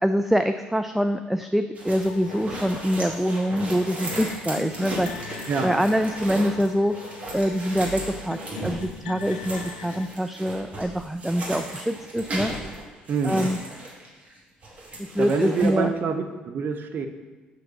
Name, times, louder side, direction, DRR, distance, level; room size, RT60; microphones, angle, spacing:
voice 1, 0.0-7.0 7.3-12.5 13.2-13.6 15.0-15.9, equal, 5° right, 8 dB, 0.4 m, -25 dB
sound 1, 1.7-14.4 14.6-15.7, right 1 dB, 30° right, 2.5 m, -36 dB
sound 2, 2.1-10.1, left 8 dB, 75° left, 0.4 m, -42 dB
voice 2, 5.5-5.8 13.1-13.5 15.2-17.1, right 5 dB, 45° right, 5 dB, 0.9 m, -26 dB
6.8 x 6.3 x 5.9 m, 1.2 s
figure-of-eight pair, 50°, 5 cm